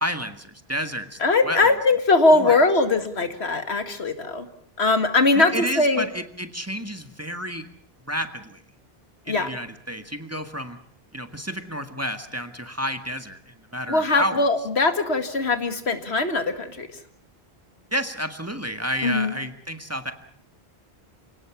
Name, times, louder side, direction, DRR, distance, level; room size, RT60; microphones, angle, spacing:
voice 1, 0.0-1.2 1.4-1.6 2.3-2.6 5.3-7.7 8.1-8.6 9.2-10.8 11.1-14.4 17.9-20.1, equal, 15° right, 7 dB, 1.7 m, -30 dB
voice 2, 1.2-4.5 4.8-6.0 9.3-9.5 13.9-16.9 19.0-19.3, left 3 dB, 85° left, 8 dB, 2.3 m, -21 dB
28.5 x 18.5 x 7.1 m, 0.62 s
omnidirectional pair, 1.1 m